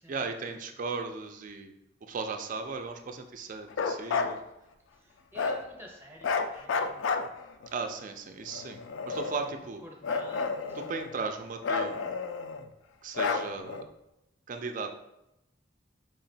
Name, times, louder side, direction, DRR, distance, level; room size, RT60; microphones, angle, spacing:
voice 1, 0.1-1.7 2.0-4.4 7.7-9.8 10.7-12.2 13.0-13.8 14.5-15.0, right 4 dB, 45° right, 6 dB, 0.3 m, -36 dB
Bark, 3.7-4.4 5.4-5.6 6.2-7.7 8.5-9.6 10.0-11.2 11.6-12.7 13.1-13.8, left 4 dB, 80° left, 0.3 m, -31 dB
voice 2, 5.0-7.0 9.8-11.2, right 1 dB, 10° right, 0 dB, 0.7 m, -49 dB
4.8 x 2.9 x 2.7 m, 0.87 s
head